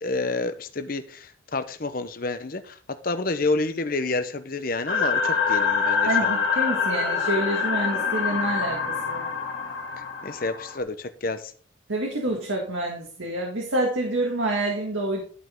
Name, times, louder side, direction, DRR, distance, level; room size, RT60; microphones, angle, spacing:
voice 1, 0.0-2.8 3.0-6.4 10.0-11.5, left 3 dB, 45° left, 10 dB, 0.8 m, -29 dB
sound 1, 4.9-10.8, left 5 dB, 65° left, 2.2 m, -25 dB
voice 2, 6.1-8.8 9.1-9.3 11.9-15.2, right 1 dB, 80° right, 0 dB, 1.8 m, -27 dB
12.0 x 5.3 x 3.7 m, 0.41 s
head